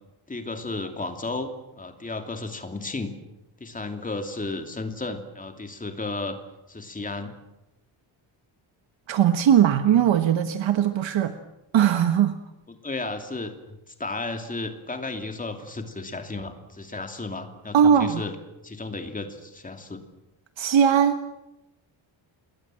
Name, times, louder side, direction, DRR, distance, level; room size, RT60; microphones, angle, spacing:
voice 1, 0.3-3.1 3.6-6.4 6.7-7.3 12.7-18.3 18.6-20.0, left 3 dB, 15° left, 6 dB, 2.7 m, -33 dB
voice 2, 9.1-11.3 11.7-12.4 17.7-18.2 20.6-21.2, right 9 dB, 65° right, 9 dB, 1.4 m, -19 dB
28.5 x 21.5 x 7.6 m, 0.95 s
wide cardioid pair, 165°, 49 cm